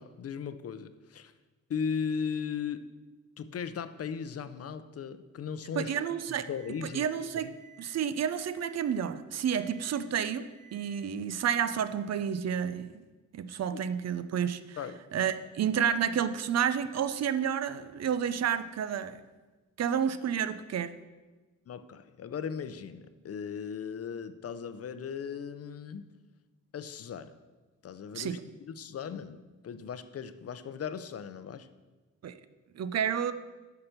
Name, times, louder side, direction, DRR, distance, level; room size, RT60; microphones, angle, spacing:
voice 1, 0.0-1.3 1.7-2.9 3.4-6.0 6.5-7.1 7.3-7.6 13.7-13.8 14.8-15.0 21.7-26.1 26.7-27.4 27.8-31.7, left 6 dB, 45° left, 11 dB, 0.6 m, -37 dB
voice 2, 5.8-6.5 6.8-7.5 7.8-12.9 13.3-14.8 15.1-19.2 19.8-20.9 28.1-28.4 32.2-32.3 32.8-33.3, right 8 dB, 50° right, 12 dB, 0.6 m, -30 dB
Alarm, 6.5-7.0 7.5-8.0 8.5-9.0 9.5-10.0 10.5-11.0, right 7 dB, 90° right, 3.1 m, -58 dB
10.0 x 5.9 x 6.7 m, 1.3 s
cardioid pair, 115°, 32 cm